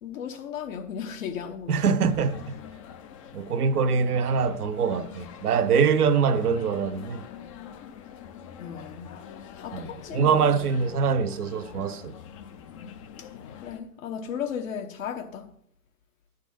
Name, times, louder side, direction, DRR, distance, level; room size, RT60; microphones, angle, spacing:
voice 1, 0.0-1.8 8.6-9.2 9.5-10.4 12.6-13.3 13.6-15.5, left 8 dB, 60° left, 1.0 m, -36 dB
voice 2, 1.7-2.6 3.3-7.2 9.7-12.2, right 6 dB, 75° right, 0.9 m, -24 dB
sound 1, 2.0-13.8, left 8 dB, 25° left, 0.4 m, -44 dB
11.5 x 4.1 x 6.9 m
hypercardioid pair, 115°, 46 cm